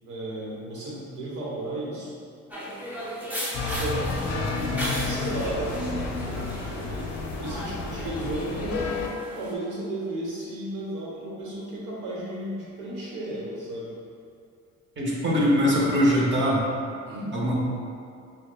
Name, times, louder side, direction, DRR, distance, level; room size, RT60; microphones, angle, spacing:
voice 1, 0.1-2.1 3.5-8.9 9.3-13.9 17.0-17.4, right 1 dB, 90° right, -6 dB, 1.1 m, -34 dB
sound 1, 2.5-9.5, equal, 5° right, 0.7 m, -36 dB
sound 2, 3.5-9.1, left 3 dB, 60° left, 0.5 m, -31 dB
voice 2, 15.0-16.6 17.3-17.6, equal, 40° right, -4 dB, 1.0 m, -22 dB
6.0 x 2.2 x 2.2 m, 2.5 s
cardioid pair, 90°, 30 cm